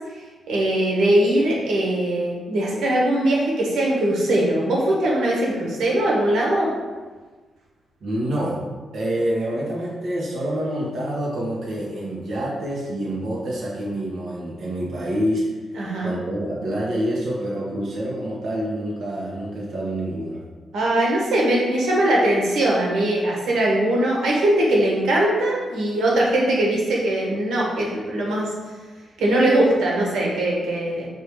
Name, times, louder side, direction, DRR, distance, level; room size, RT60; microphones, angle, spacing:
voice 1, 0.5-6.7 15.8-16.1 20.7-28.5 29.2-31.1, right 1 dB, 85° right, -3 dB, 1.6 m, -21 dB
voice 2, 8.0-8.6 8.9-15.5 16.0-20.4, right 1 dB, 55° right, -5 dB, 1.3 m, -27 dB
6.7 x 3.3 x 4.9 m, 1.3 s
wide cardioid pair, 145°, 0 cm